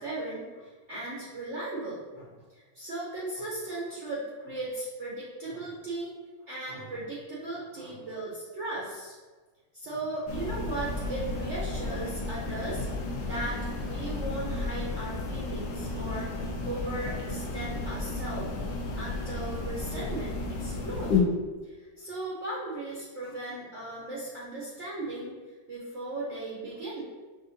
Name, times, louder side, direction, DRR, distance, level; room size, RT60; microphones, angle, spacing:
voice 1, 0.0-6.1 6.5-9.1 9.7-12.9 13.2-16.3 16.6-18.5 19.0-21.1 21.6-25.4 25.7-27.0, right 2 dB, 70° right, -7 dB, 0.6 m, -37 dB
sound 1, 10.3-21.2, left 3 dB, 70° left, 1.1 m, -33 dB
6.5 x 2.5 x 2.6 m, 1.3 s
omnidirectional pair, 2.3 m